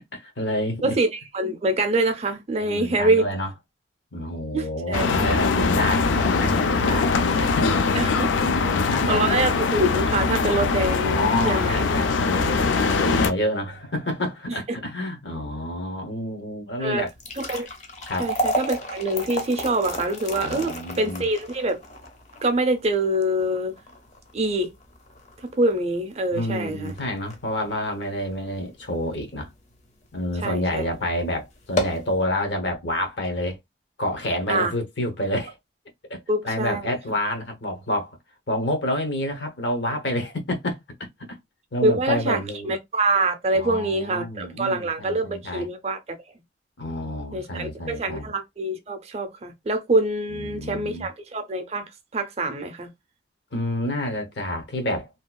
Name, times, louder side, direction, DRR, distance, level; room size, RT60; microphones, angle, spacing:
voice 1, 0.1-1.0 2.5-3.5 4.1-7.7 8.5-9.2 11.0-17.1 18.1-18.3 20.4-21.3 26.3-29.5 30.1-33.6 34.0-35.5 36.1-38.2 38.5-40.8 41.3-41.4 41.7-42.7 43.5-45.7 46.8-48.3 50.3-51.1 53.5-55.1, left 1 dB, 70° left, 0.8 m, -28 dB
voice 2, 0.8-3.3 4.5-5.1 7.9-8.3 9.1-11.8 14.5-14.6 16.8-17.0 17.4-17.7 18.2-21.8 22.4-23.7 24.3-24.7 25.6-26.9 30.4-30.8 34.5-34.7 36.3-36.9 41.8-46.0 47.3-52.9, right 2 dB, 35° right, 0.5 m, -25 dB
sound 1, 4.9-13.3, left 4 dB, 85° left, 0.4 m, -22 dB
sound 2, 17.0-29.3 29.7-29.8 30.5-30.7 31.0-31.1 31.6-32.1, equal, 40° left, 0.6 m, -32 dB
2.8 x 2.3 x 2.2 m
head